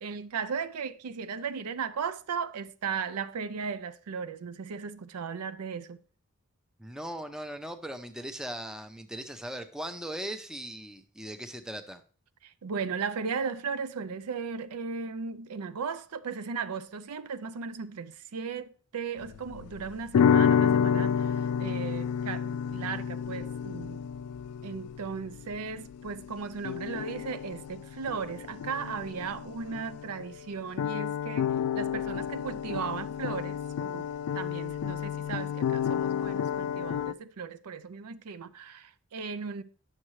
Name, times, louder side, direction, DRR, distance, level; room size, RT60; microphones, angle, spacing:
voice 1, 0.0-6.0 12.4-24.0 24.6-34.1 34.3-39.6, right 5 dB, 90° right, 0.5 m, -36 dB
voice 2, 6.8-12.0, right 1 dB, 5° right, 0.5 m, -39 dB
sound 1, 19.2-30.5 30.8-37.1, left 8 dB, 80° left, 0.3 m, -30 dB
9.8 x 6.5 x 3.1 m
head